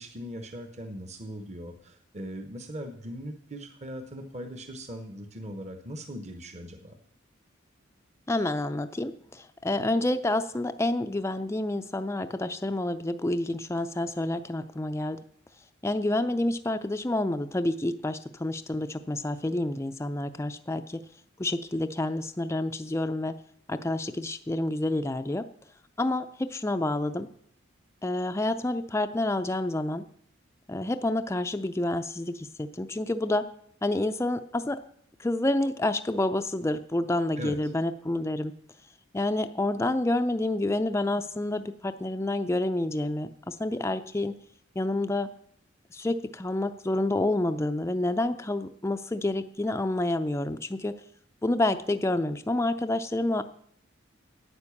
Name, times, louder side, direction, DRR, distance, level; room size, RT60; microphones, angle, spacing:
voice 1, 0.0-7.0 37.4-37.7, equal, 35° right, 6 dB, 1.0 m, -40 dB
voice 2, 8.3-15.2 15.8-21.0 21.4-23.4 23.7-25.4 26.0-27.3 28.0-30.0 30.7-33.5 33.8-34.8 35.2-38.5 39.1-44.3 44.8-45.3 45.9-50.9 51.4-53.4, left 1 dB, 15° left, 8 dB, 0.4 m, -28 dB
9.7 x 9.0 x 7.1 m, 0.66 s
head